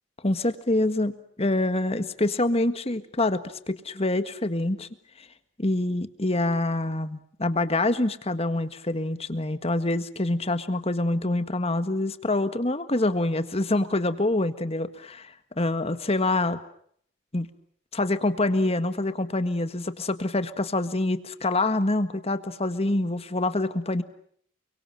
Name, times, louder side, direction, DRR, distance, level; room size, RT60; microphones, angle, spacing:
voice 1, 0.2-1.1 1.4-4.9 5.6-16.6 17.3-17.5 17.9-24.0, left 2 dB, 30° left, 11 dB, 1.7 m, -26 dB
29.5 x 24.0 x 7.5 m, 0.64 s
head